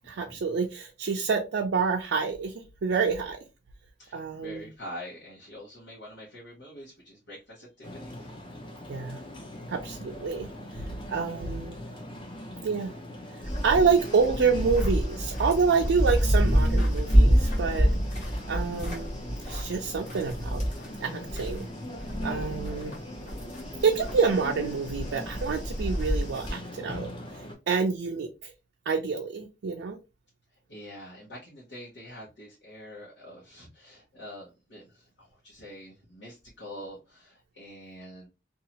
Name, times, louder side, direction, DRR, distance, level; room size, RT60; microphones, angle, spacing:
voice 1, 0.1-3.4 4.1-4.7 8.9-9.2 9.7-11.8 12.6-12.9 13.6-17.9 18.5-19.1 19.4-20.6 21.0-21.7 22.2-22.9 23.8-27.1 27.7-28.5 28.9-30.0, right 5 dB, 75° right, 0.4 m, -27 dB
voice 2, 4.0-8.3 30.7-38.3, equal, 85° left, 1.0 m, -45 dB
sound 1, 7.8-27.6, left 1 dB, 25° left, 0.5 m, -40 dB
sound 2, 13.4-21.6 21.9-26.5, equal, 40° left, 1.0 m, -27 dB
2.7 x 2.3 x 2.8 m
head